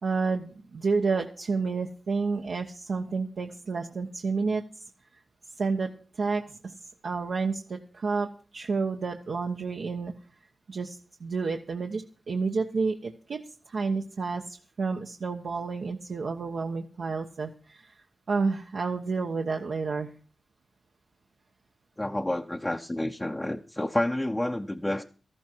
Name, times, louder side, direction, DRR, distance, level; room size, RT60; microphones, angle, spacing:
voice 1, 0.0-4.8 5.6-5.9 6.1-6.7 7.0-10.1 10.4-13.4 13.7-20.1, right 4 dB, 70° right, 1.1 m, -30 dB
voice 2, 22.0-25.0, left 1 dB, 15° left, 0.8 m, -29 dB
13.5 x 12.5 x 4.6 m
cardioid pair, 70°, 0 cm